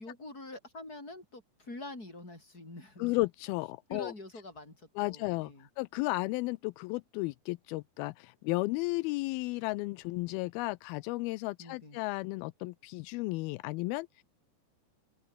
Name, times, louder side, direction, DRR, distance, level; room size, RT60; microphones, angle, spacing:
voice 1, 0.0-3.1 3.9-5.7 11.6-12.0, left 2 dB, 20° left, 8.1 m, -46 dB
voice 2, 3.0-4.1 5.0-14.2, left 22 dB, 85° left, 2.2 m, -34 dB
open air
omnidirectional pair, 4.8 m